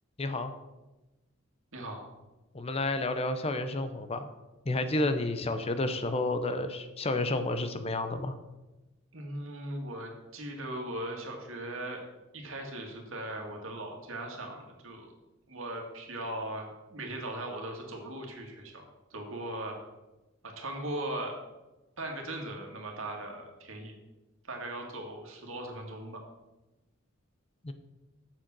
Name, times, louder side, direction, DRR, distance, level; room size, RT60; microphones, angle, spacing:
voice 1, 0.2-0.5 2.5-4.3 4.7-8.3 27.6-27.7, left 2 dB, 30° left, 9 dB, 0.6 m, -30 dB
voice 2, 1.7-2.0 9.1-12.0 12.3-15.1 15.5-18.8 19.1-19.8 20.4-21.4 22.0-24.0 24.5-26.2, right 1 dB, 70° right, 2 dB, 2.0 m, -39 dB
7.4 x 7.3 x 6.1 m, 1.1 s
head